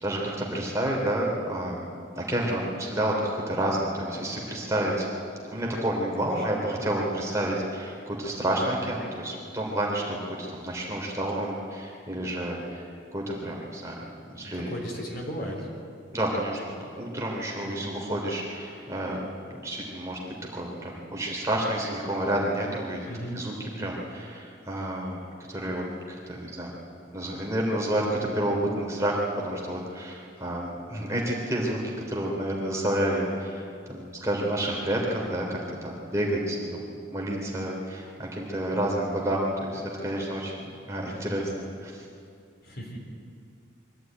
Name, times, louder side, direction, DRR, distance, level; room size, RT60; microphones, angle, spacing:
voice 1, 0.0-1.9 2.1-5.1 5.5-12.9 13.1-14.0 14.3-14.7 16.1-19.2 19.5-20.2 20.5-23.1 23.3-25.2 25.5-25.8 26.3-26.7 27.1-42.0, right 1 dB, 15° right, -2 dB, 3.2 m, -29 dB
voice 2, 14.4-15.7 17.6-17.9 23.1-23.9 42.6-43.0, equal, 50° left, -1 dB, 4.0 m, -37 dB
23.5 x 14.0 x 9.2 m, 2.4 s
head